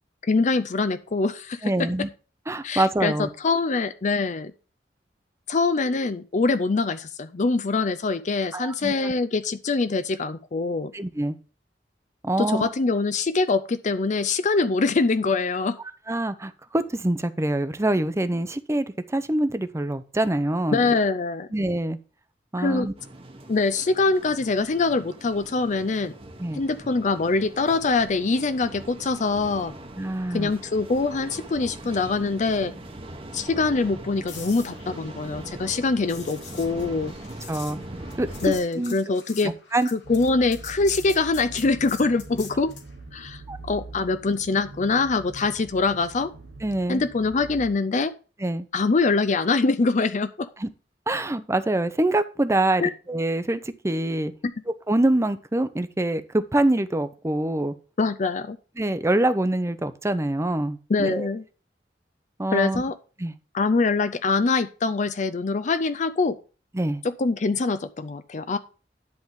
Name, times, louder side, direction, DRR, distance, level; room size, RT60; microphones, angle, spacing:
voice 1, 0.2-1.9 2.6-4.5 5.5-10.9 12.4-15.8 20.7-21.5 22.6-22.9 23.5-26.1 26.5-29.7 30.3-32.7 33.3-37.1 38.4-39.5 39.9-42.7 43.1-46.3 46.9-48.1 48.7-50.5 52.8-52.9 58.0-58.6 60.9-61.4 62.5-62.9 63.5-66.4 67.0-68.6, left 3 dB, 45° left, 12 dB, 0.5 m, -24 dB
voice 2, 1.6-2.1 2.5-3.3 8.5-9.1 10.9-11.4 12.2-12.7 16.1-20.8 21.5-22.0 22.5-22.9 26.4-26.6 30.0-30.5 37.5-37.8 38.2-38.3 38.8-38.9 39.7-39.9 43.5-43.6 46.6-47.0 48.4-48.6 50.6-50.7 51.1-54.3 54.9-57.7 58.8-61.3 62.4-62.8 63.2-63.3 66.7-67.0, right 1 dB, 15° right, 11 dB, 0.6 m, -25 dB
sound 1, 23.0-38.6, right 1 dB, 35° right, 1.1 m, -41 dB
sound 2, 34.3-42.9 47.1-47.3, left 7 dB, 85° left, 2.3 m, -45 dB
sound 3, 40.0-47.7, right 2 dB, 85° right, 1.0 m, -43 dB
10.5 x 3.6 x 6.2 m, 0.35 s
head